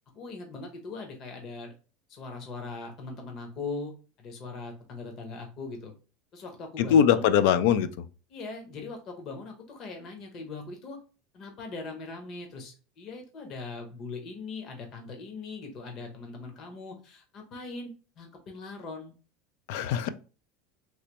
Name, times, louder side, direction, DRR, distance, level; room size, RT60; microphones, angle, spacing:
voice 1, 0.1-1.7 2.1-5.9 6.3-7.3 8.3-11.0 11.3-19.1 19.8-20.0, left 3 dB, 45° left, 0.9 m, -40 dB
voice 2, 6.8-7.9 19.7-20.1, left 8 dB, 70° left, 0.3 m, -21 dB
3.2 x 2.9 x 3.0 m
supercardioid pair, 125°, 0 cm